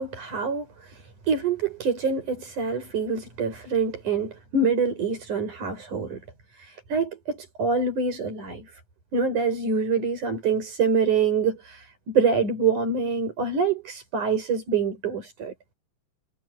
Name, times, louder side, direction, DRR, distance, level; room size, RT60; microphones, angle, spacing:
voice 1, 0.0-6.2 6.5-8.7 9.1-15.5, right 5 dB, 75° right, 8.2 m, -26 dB
omnidirectional pair, 3.5 m